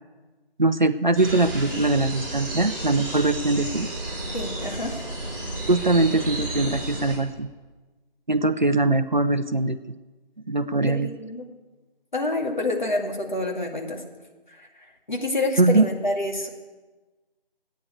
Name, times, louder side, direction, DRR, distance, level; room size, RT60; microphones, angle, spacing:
voice 1, 0.6-3.9 5.7-7.5 8.3-9.9 10.5-11.1 15.6-15.9, right 2 dB, 50° right, 11 dB, 0.6 m, -22 dB
sound 1, 1.1-7.2, right 1 dB, 20° right, 4.7 m, -32 dB
voice 2, 4.3-5.0 10.9-11.4 12.1-14.0 14.5-16.5, left 2 dB, 50° left, 1 dB, 2.3 m, -28 dB
14.5 x 9.2 x 8.3 m, 1.3 s
figure-of-eight pair, 165°, 30 cm